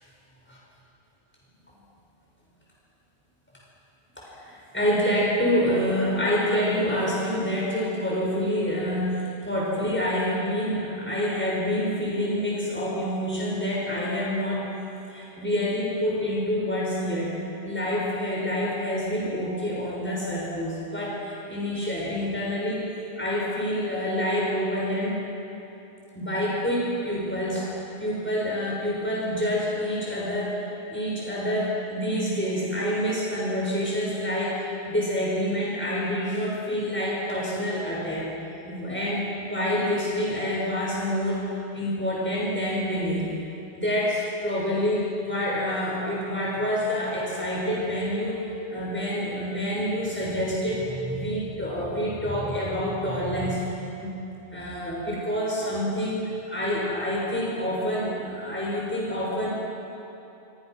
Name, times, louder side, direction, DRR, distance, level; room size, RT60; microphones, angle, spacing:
voice 1, 4.2-14.7 15.1-17.3 17.6-22.9 23.2-25.2 26.1-30.5 30.9-38.3 38.7-41.5 41.7-43.3 43.7-48.4 48.7-54.1 54.5-59.5, equal, 10° left, -5 dB, 6.4 m, -27 dB
28.0 x 26.0 x 6.2 m, 2.9 s
omnidirectional pair, 1.2 m